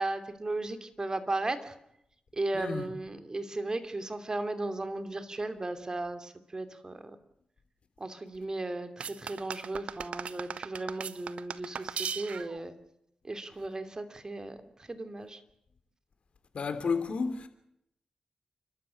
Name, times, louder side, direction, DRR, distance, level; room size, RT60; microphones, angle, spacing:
voice 1, 0.0-1.7 2.3-7.2 8.0-12.7 13.2-14.6 14.9-15.4, right 2 dB, 35° right, 2.7 m, -35 dB
voice 2, 2.5-2.9 16.5-17.5, left 5 dB, 65° left, 3.1 m, -31 dB
sound 1, 9.0-12.6, right 7 dB, 80° right, 0.8 m, -38 dB
29.5 x 13.0 x 8.8 m
cardioid pair, 65°, 2 cm